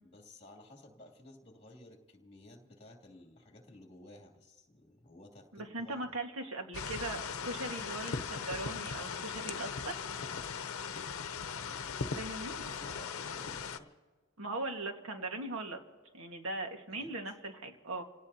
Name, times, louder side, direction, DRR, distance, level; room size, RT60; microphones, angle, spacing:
voice 1, 0.0-6.2 10.9-12.0 12.6-13.9 16.9-17.1, left 1 dB, 30° left, 1 dB, 2.6 m, -55 dB
voice 2, 5.5-9.7 12.1-12.6 14.4-15.8 16.1-18.0, right 2 dB, 80° right, 4 dB, 1.6 m, -39 dB
sound 1, 6.7-13.8, left 6 dB, 85° left, 0.8 m, -39 dB
28.5 x 18.0 x 2.8 m, 1.4 s
head